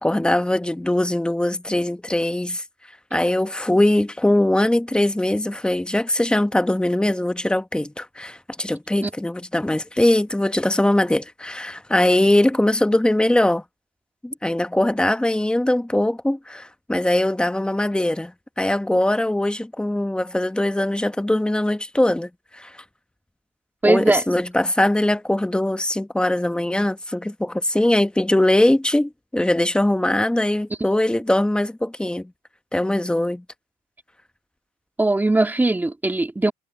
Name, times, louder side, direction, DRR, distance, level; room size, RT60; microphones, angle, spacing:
voice 1, 0.0-2.6 3.1-13.6 14.2-22.7 23.8-32.3 32.7-33.4, left 1 dB, 5° left, 1.1 m, -21 dB
voice 2, 23.8-24.4 30.8-30.9 35.0-36.5, right 2 dB, 10° right, 2.1 m, -20 dB
cardioid pair, 110°, 17 cm